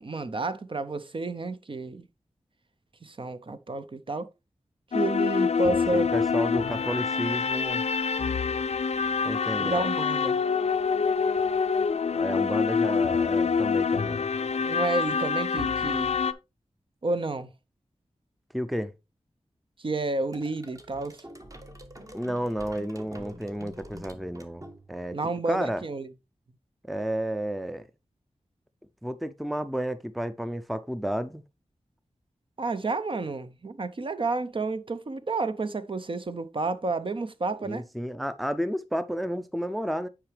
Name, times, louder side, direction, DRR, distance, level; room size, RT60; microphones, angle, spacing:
voice 1, 0.0-2.0 3.0-4.3 4.9-6.1 9.6-10.4 14.6-16.2 17.0-17.5 19.8-21.2 25.1-26.1 32.6-37.8, right 3 dB, 45° right, 0.6 m, -30 dB
sound 1, 4.9-16.3, left 5 dB, 65° left, 0.5 m, -26 dB
voice 2, 5.6-7.8 9.2-9.9 12.1-14.2 18.5-18.9 22.1-24.6 24.9-25.2 25.5-25.8 26.8-27.9 29.0-31.4 37.6-40.1, equal, ahead, 0.5 m, -31 dB
sound 2, 20.3-25.2, right 1 dB, 30° right, 1.0 m, -46 dB
8.8 x 4.8 x 3.2 m
wide cardioid pair, 70°, 12 cm